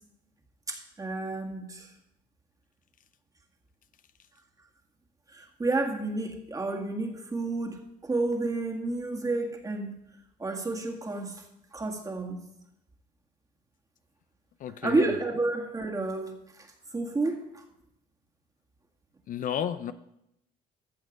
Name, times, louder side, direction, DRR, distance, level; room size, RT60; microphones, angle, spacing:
voice 1, 0.7-1.9 5.3-10.0 10.4-11.4 11.7-12.4 14.8-16.7 16.9-17.6, right 2 dB, 20° right, 2 dB, 1.9 m, -30 dB
voice 2, 14.6-15.1 19.3-19.9, left 9 dB, 55° left, 12 dB, 0.6 m, -32 dB
15.0 x 6.4 x 5.2 m, 0.83 s
cardioid pair, 110°, 17 cm